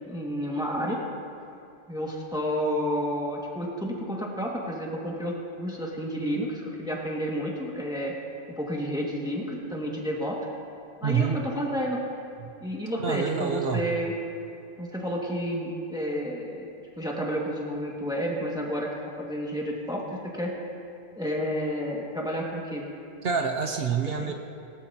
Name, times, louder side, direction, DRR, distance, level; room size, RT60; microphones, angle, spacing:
voice 1, 0.1-1.0 1.9-8.1 8.6-10.4 11.0-12.0 12.6-14.1 14.8-20.6 21.2-22.9 24.2-24.3, equal, 5° right, -3 dB, 1.9 m, -30 dB
voice 2, 11.0-11.4 12.4-12.5 13.0-13.9 23.2-24.3, right 6 dB, 70° right, 4 dB, 1.0 m, -27 dB
20.0 x 17.5 x 2.9 m, 2.7 s
omnidirectional pair, 1.1 m